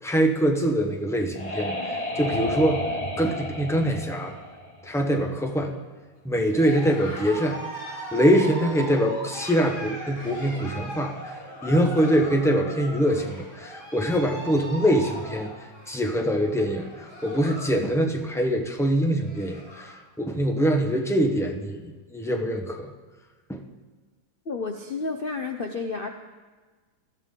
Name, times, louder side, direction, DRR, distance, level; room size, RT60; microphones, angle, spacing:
voice 1, 0.0-1.8 2.2-2.8 3.2-4.4 4.8-5.7 6.2-7.6 8.1-11.3 11.6-15.5 15.9-22.9 23.5-23.6, equal, 5° left, 3 dB, 0.5 m, -24 dB
sound 1, 0.8-5.4, left 1 dB, 20° left, 1.3 m, -32 dB
Cheering, 6.5-17.8 18.1-18.5 18.9-19.0 19.2-20.0, right 1 dB, 55° left, 4.8 m, -39 dB
voice 2, 24.5-26.1, left 4 dB, 80° left, 4 dB, 0.5 m, -31 dB
20.5 x 13.5 x 3.8 m, 1.4 s
omnidirectional pair, 2.1 m